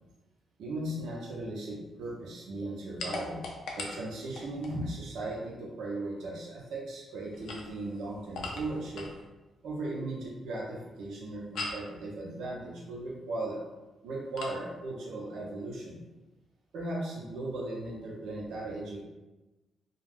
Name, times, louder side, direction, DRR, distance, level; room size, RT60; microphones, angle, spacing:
voice 1, 0.6-3.4 3.7-9.1 9.6-13.6 14.0-16.0 16.7-19.0, right 2 dB, 85° right, -3 dB, 0.8 m, -37 dB
sound 1, 3.0-4.8 7.3-9.2 11.6-11.9 14.4-14.6, left 3 dB, 80° left, 0.4 m, -40 dB
2.4 x 2.3 x 3.4 m, 1.1 s
cardioid pair, 85°, 0 cm